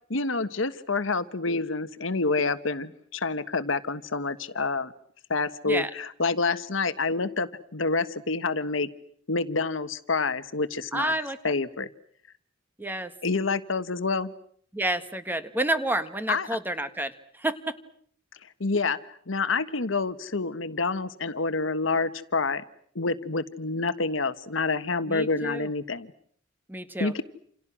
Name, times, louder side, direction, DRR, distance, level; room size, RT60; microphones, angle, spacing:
voice 1, 0.1-4.9 5.3-8.9 9.3-11.1 11.4-11.9 13.2-14.3 16.3-16.5 18.6-22.6 22.9-26.1 27.0-27.2, left 3 dB, 85° left, 13 dB, 1.4 m, -28 dB
voice 2, 10.9-11.5 12.8-13.1 14.7-17.7 25.0-25.7 26.7-27.1, right 1 dB, 10° right, 10 dB, 1.5 m, -29 dB
28.5 x 28.0 x 6.2 m, 0.62 s
head